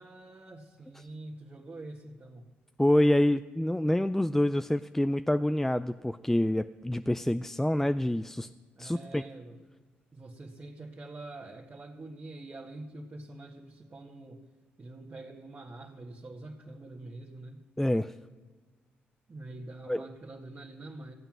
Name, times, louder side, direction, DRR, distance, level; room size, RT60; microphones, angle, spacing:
voice 1, 0.0-2.5 8.8-9.6 10.1-14.4 14.8-17.6 19.3-21.1, right 2 dB, 35° right, -2 dB, 1.8 m, -45 dB
voice 2, 2.8-8.5 8.8-9.2 17.8-18.1 19.9-20.0, left 1 dB, 5° left, 11 dB, 0.4 m, -27 dB
15.0 x 8.8 x 6.2 m, 1.4 s
hypercardioid pair, 45°, 5 cm